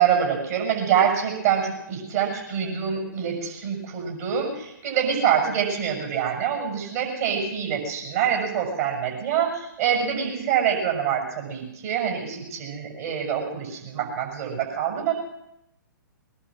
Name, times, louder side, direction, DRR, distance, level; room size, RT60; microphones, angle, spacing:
voice 1, 0.0-15.1, right 8 dB, 50° right, 1 dB, 6.5 m, -25 dB
21.0 x 20.0 x 6.3 m, 0.83 s
figure-of-eight pair, 125°, 11 cm